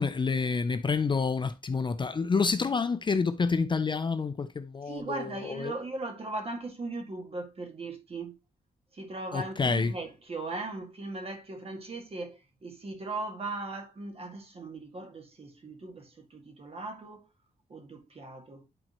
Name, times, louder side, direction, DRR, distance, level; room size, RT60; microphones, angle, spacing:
voice 1, 0.0-5.7 9.3-9.9, left 4 dB, 30° left, 0.5 m, -28 dB
voice 2, 4.9-8.4 8.9-17.3 17.7-18.7, right 2 dB, 40° right, 2.0 m, -38 dB
11.0 x 4.3 x 3.0 m
wide cardioid pair, 145°, 16 cm